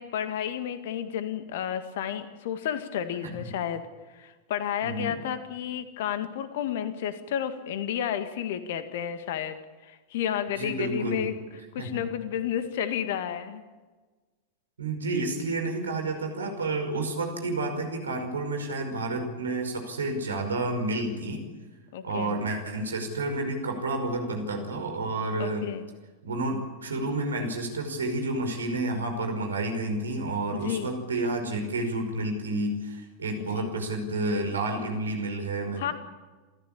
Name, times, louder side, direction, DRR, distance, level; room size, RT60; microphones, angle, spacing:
voice 1, 0.0-3.9 4.1-9.6 9.8-11.3 11.7-13.6 21.9-22.4 25.4-25.8 30.5-30.9 33.4-33.7 35.8-35.9, left 9 dB, 55° left, 10 dB, 2.0 m, -31 dB
voice 2, 4.8-5.1 10.6-11.3 11.8-11.9 14.8-21.5 22.0-25.7 26.2-35.9, right 2 dB, 70° right, 5 dB, 5.3 m, -30 dB
27.5 x 14.5 x 8.6 m, 1.3 s
figure-of-eight pair, 90°, 0 cm